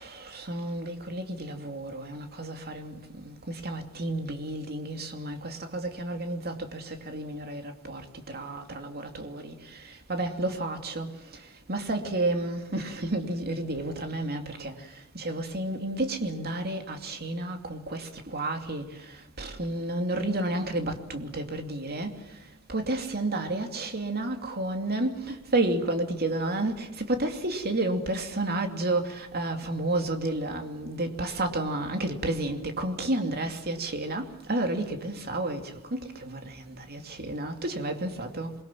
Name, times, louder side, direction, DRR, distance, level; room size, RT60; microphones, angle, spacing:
voice 1, 0.0-8.0 8.3-11.4 11.7-14.9 15.1-22.2 22.7-38.5, right 2 dB, 45° right, 2.7 m, -31 dB
27.5 x 22.0 x 7.5 m
head